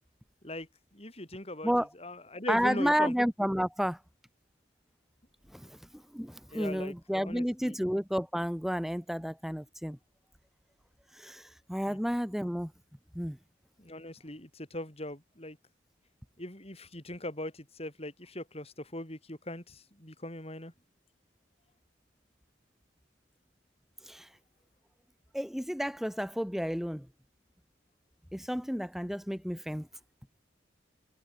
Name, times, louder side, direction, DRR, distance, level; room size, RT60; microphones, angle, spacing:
voice 1, 0.4-1.7 2.0-3.1 5.6-5.7 6.5-7.8 11.9-12.0 13.8-15.6 16.4-20.7, left 1 dB, 30° left, 5.5 m, -40 dB
voice 2, 2.5-4.0 5.5-10.0 11.1-12.7 13.1-13.4 24.1-24.3 25.3-27.1 28.3-29.9, equal, ahead, 5.0 m, -31 dB
head